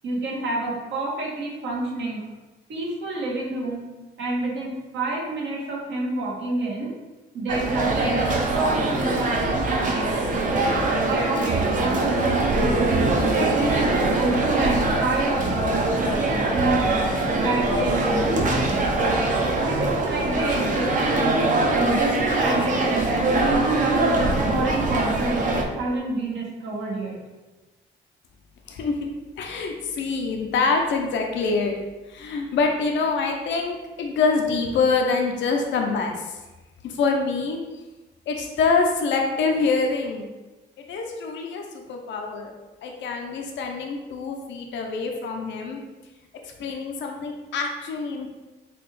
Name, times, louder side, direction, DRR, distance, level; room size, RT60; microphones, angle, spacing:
voice 1, 0.0-2.3 2.7-3.8 4.2-6.9 7.3-10.5 10.9-13.0 13.3-17.0 17.3-18.9 19.6-21.4 21.9-27.2, right 2 dB, 70° right, -3 dB, 1.0 m, -28 dB
sound 1, 7.5-25.6, right 2 dB, 40° right, 0.6 m, -23 dB
voice 2, 28.7-29.1 29.4-31.7 32.1-36.4 36.8-37.6 38.3-40.2 40.8-42.5 42.8-45.8 46.6-48.3, left 4 dB, 70° left, 2 dB, 0.5 m, -25 dB
4.0 x 2.3 x 3.1 m, 1.2 s
cardioid pair, 90°, 20 cm